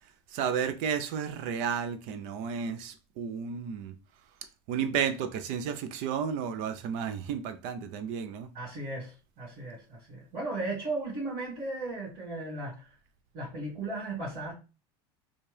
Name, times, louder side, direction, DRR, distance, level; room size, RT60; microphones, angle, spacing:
voice 1, 0.3-3.9 4.7-8.5, right 7 dB, 65° right, 0.5 m, -32 dB
voice 2, 8.5-12.9 13.3-14.5, right 2 dB, 45° right, 2.1 m, -36 dB
4.3 x 2.4 x 3.2 m
supercardioid pair, 125°, 13 cm